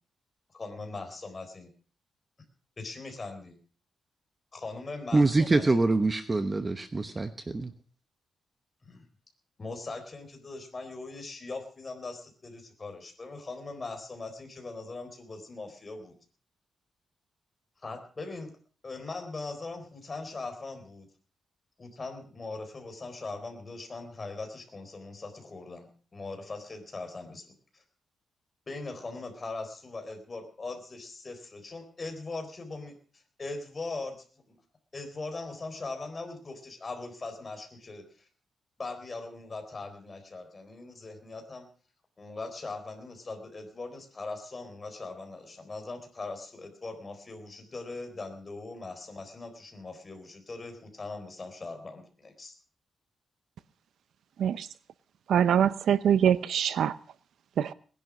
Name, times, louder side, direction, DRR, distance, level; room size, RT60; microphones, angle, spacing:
voice 1, 0.5-1.7 2.8-3.6 4.5-5.8 8.8-9.1 9.6-16.1 17.8-18.5 18.8-21.1 21.8-27.8 28.7-34.2 34.5-34.6 34.9-38.3 38.8-41.7 42.2-52.5, left 3 dB, 25° left, 4.1 m, -40 dB
voice 2, 5.1-7.7, right 3 dB, 20° right, 0.9 m, -25 dB
voice 3, 55.3-56.9 57.6-57.7, right 9 dB, 80° right, 0.7 m, -24 dB
19.5 x 11.0 x 6.3 m
wide cardioid pair, 155°, 0 cm